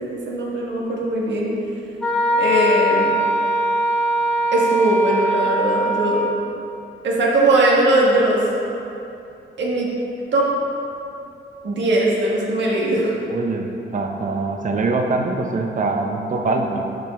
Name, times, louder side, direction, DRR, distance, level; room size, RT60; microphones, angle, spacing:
voice 1, 0.0-1.5 2.4-3.2 4.5-6.2 7.0-8.5 9.6-9.9 10.3-10.5 11.6-13.2, right 2 dB, 75° right, -3 dB, 1.3 m, -19 dB
Wind instrument woodwind instrument, 2.0-6.4, equal, 5° left, 1.2 m, -21 dB
voice 2, 13.3-16.8, right 3 dB, 45° right, 3 dB, 0.6 m, -23 dB
7.2 x 5.2 x 3.5 m, 2.8 s
wide cardioid pair, 135°, 19 cm